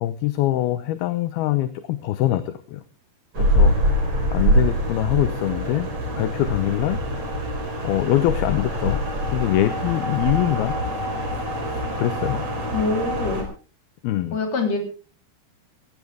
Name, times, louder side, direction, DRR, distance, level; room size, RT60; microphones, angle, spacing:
voice 1, 0.0-2.8 3.4-3.7 4.3-5.9 6.1-7.0 7.8-9.0 9.3-10.7 11.6-12.4 14.0-14.4, left 14 dB, 75° left, 11 dB, 2.6 m, -23 dB
sound 1, 3.3-13.4, equal, 35° right, 4.9 m, -24 dB
voice 2, 12.7-13.4 14.3-14.8, left 4 dB, 40° left, 4 dB, 4.5 m, -24 dB
18.5 x 16.0 x 3.5 m, 0.38 s
omnidirectional pair, 5.1 m